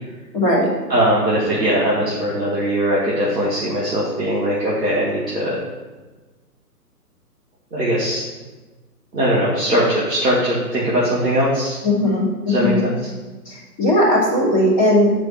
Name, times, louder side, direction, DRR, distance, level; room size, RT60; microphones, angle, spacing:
voice 1, 0.3-0.7 11.8-12.8 13.5-15.1, left 1 dB, 30° left, -6 dB, 2.8 m, -17 dB
voice 2, 0.9-5.6 7.7-8.2 9.1-11.8 12.5-12.9, equal, 5° left, -19 dB, 0.5 m, -20 dB
8.3 x 4.5 x 5.8 m, 1.2 s
hypercardioid pair, 150°, 47 cm